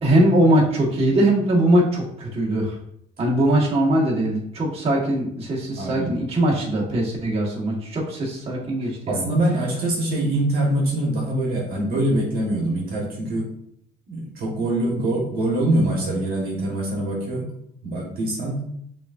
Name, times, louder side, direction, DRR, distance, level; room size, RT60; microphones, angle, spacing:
voice 1, 0.0-2.8 3.2-9.2, right 1 dB, 35° right, -4 dB, 1.4 m, -21 dB
voice 2, 5.8-6.1 9.1-13.5 14.1-17.4 17.8-18.7, right 1 dB, 60° right, -3 dB, 1.3 m, -24 dB
6.0 x 2.6 x 2.5 m, 0.70 s
cardioid pair, 110°, 17 cm